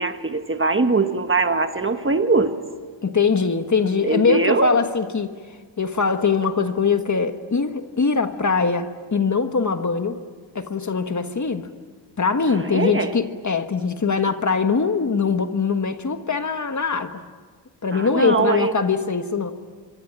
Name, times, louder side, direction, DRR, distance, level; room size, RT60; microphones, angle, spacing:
voice 1, 0.0-2.6 4.0-4.7 12.5-13.1 17.9-18.7, right 3 dB, 25° right, 8 dB, 1.2 m, -21 dB
voice 2, 3.0-5.3 5.8-10.2 10.5-11.7 12.2-17.2 17.8-19.5, left 5 dB, 40° left, 7 dB, 1.5 m, -22 dB
25.5 x 25.0 x 8.8 m, 1.5 s
wide cardioid pair, 170°, 47 cm